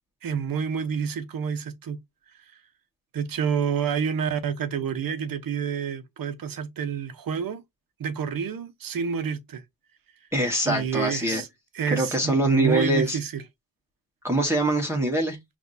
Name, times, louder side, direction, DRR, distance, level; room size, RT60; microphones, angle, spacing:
voice 1, 0.2-2.0 3.1-7.6 8.0-9.6 10.6-11.5 11.7-13.4, right 7 dB, 55° right, 0.9 m, -28 dB
voice 2, 10.3-11.4 11.9-13.2 14.2-15.4, right 1 dB, 5° right, 1.4 m, -23 dB
5.8 x 2.7 x 2.6 m
cardioid pair, 65°, 41 cm